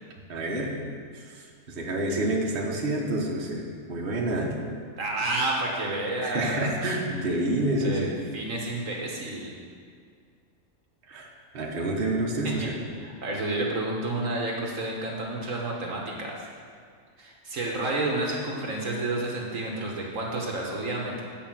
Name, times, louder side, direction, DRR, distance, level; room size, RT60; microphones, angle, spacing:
voice 1, 0.3-0.7 1.1-3.6 3.9-4.5 6.2-8.1 11.1-11.3 11.5-12.7, right 1 dB, 40° right, -2 dB, 1.3 m, -28 dB
voice 2, 5.0-6.9 7.8-8.1 8.3-9.6 12.4-12.7 13.0-16.4 17.2-21.2, right 2 dB, 60° right, -1 dB, 1.5 m, -30 dB
9.0 x 5.0 x 7.4 m, 2.2 s
omnidirectional pair, 1.6 m